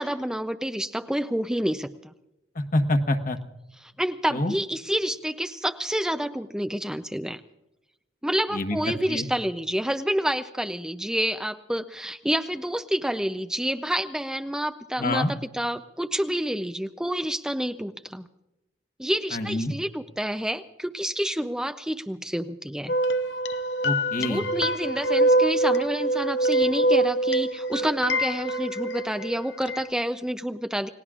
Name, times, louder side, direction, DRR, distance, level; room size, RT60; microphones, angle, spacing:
voice 1, 0.0-2.1 4.0-7.4 8.2-18.3 19.0-22.9 24.2-30.9, equal, 5° right, 8 dB, 0.5 m, -28 dB
voice 2, 2.5-3.4 4.3-4.5 8.5-8.8 9.1-9.3 15.0-15.3 19.3-19.7 23.8-24.5, left 1 dB, 50° left, 6 dB, 1.3 m, -26 dB
sound 1, 22.9-29.9, right 1 dB, 80° left, 0.8 m, -24 dB
29.5 x 18.5 x 2.4 m, 0.94 s
head